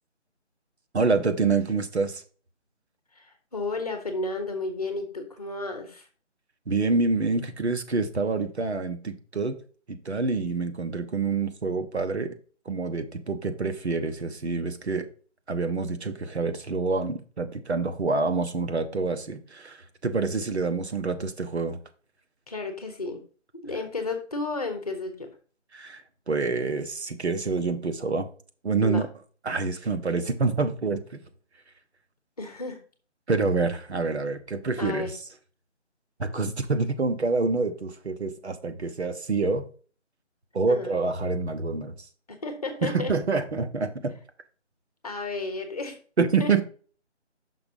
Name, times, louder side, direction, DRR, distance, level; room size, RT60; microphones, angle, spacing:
voice 1, 0.9-2.2 6.7-9.6 9.9-12.3 12.6-15.1 15.5-19.8 20.0-21.8 25.7-28.3 28.6-29.1 29.4-31.2 33.3-35.1 36.2-39.6 40.5-42.0 42.8-44.2 46.2-46.6, right 4 dB, 65° right, 1.1 m, -27 dB
voice 2, 3.1-6.1 22.5-23.2 23.6-25.3 28.8-29.0 32.4-32.8 34.8-35.1 40.7-41.0 42.3-43.1 45.0-46.0 46.4-46.6, left 3 dB, 30° left, 1.1 m, -32 dB
6.0 x 4.0 x 5.3 m
figure-of-eight pair, 170°, 36 cm